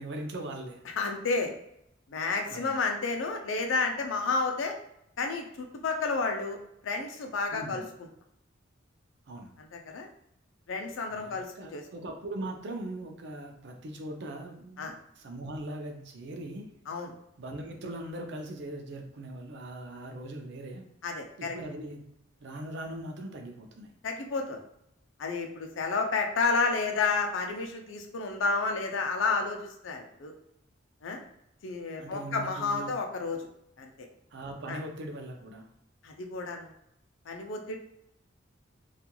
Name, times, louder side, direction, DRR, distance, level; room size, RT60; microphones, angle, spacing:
voice 1, 0.0-0.8 2.5-2.7 7.5-7.9 9.3-9.6 11.1-16.8 17.4-20.9 21.4-23.9 31.9-33.1 34.3-35.7, right 1 dB, 65° right, 4 dB, 0.5 m, -40 dB
voice 2, 1.0-1.5 2.1-4.8 5.2-6.6 6.8-7.8 9.6-10.1 10.7-11.8 14.8-14.9 16.9-17.1 21.0-21.6 24.0-24.6 25.2-30.3 31.0-31.2 31.6-33.4 33.8-34.1 34.7-34.8 36.0-36.7 37.3-37.8, left 4 dB, 80° left, 4 dB, 0.5 m, -31 dB
2.9 x 2.4 x 2.2 m, 0.77 s
head